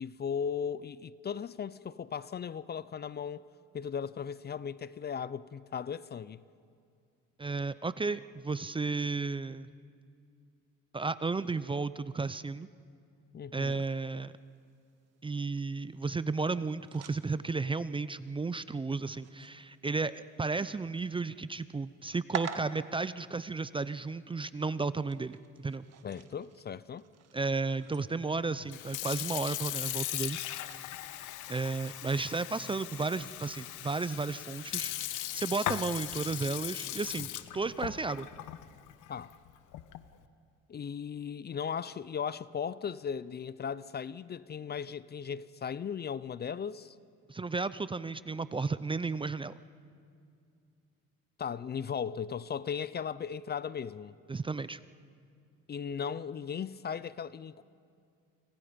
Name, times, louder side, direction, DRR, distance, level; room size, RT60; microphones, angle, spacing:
voice 1, 0.0-3.4 3.7-6.4 13.3-13.8 26.0-27.0 39.1-39.3 40.7-47.0 51.4-54.1 55.7-57.6, left 7 dB, 35° left, 0.5 m, -37 dB
voice 2, 7.4-9.7 10.9-12.7 13.5-14.3 15.2-25.8 27.3-30.4 31.5-37.3 37.5-38.3 47.3-49.6 54.3-54.8, right 4 dB, 15° right, 0.5 m, -33 dB
sound 1, 13.7-32.5, right 8 dB, 55° right, 1.6 m, -49 dB
Sink (filling or washing) / Fill (with liquid), 28.6-40.1, left 13 dB, 75° left, 1.1 m, -38 dB
29.0 x 25.5 x 5.2 m
cardioid pair, 100°, 31 cm